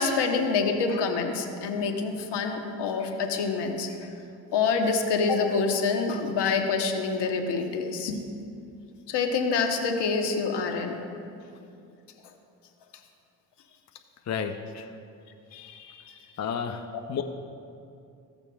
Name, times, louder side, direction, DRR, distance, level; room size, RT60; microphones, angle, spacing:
voice 1, 0.0-4.1 4.5-8.2 9.1-11.0 15.5-16.3, left 4 dB, 70° left, 4 dB, 1.2 m, -27 dB
voice 2, 14.3-14.9 16.4-17.2, left 7 dB, 40° left, 5 dB, 0.7 m, -32 dB
15.5 x 6.8 x 2.3 m, 2.6 s
hypercardioid pair, 55°, 43 cm